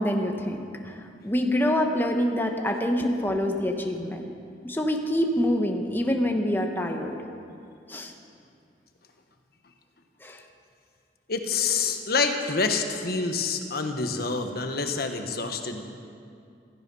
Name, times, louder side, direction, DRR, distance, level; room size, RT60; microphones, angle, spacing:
voice 1, 0.0-4.2 4.6-7.2 7.9-8.1 10.2-10.4, left 1 dB, 10° left, 3 dB, 1.1 m, -26 dB
voice 2, 11.3-15.8, left 4 dB, 55° left, 5 dB, 1.3 m, -27 dB
16.0 x 15.0 x 5.5 m, 2.4 s
head